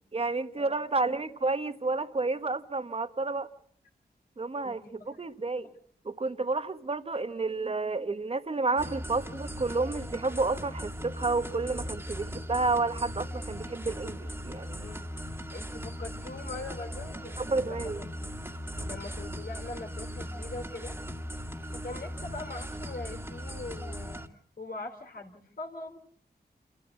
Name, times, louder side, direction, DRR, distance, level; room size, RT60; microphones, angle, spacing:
voice 1, 0.1-3.5 4.4-4.8 5.2-5.7 6.0-14.9 17.4-18.0, right 3 dB, 35° right, 1.2 m, -30 dB
voice 2, 4.6-5.1 5.6-5.7 14.8-15.0 15.5-18.3 18.8-21.0 21.6-24.2 24.6-26.0, left 3 dB, 60° left, 3.4 m, -42 dB
sound 1, 8.8-24.3, equal, 15° right, 2.0 m, -39 dB
29.0 x 13.5 x 8.2 m
wide cardioid pair, 130°, 17 cm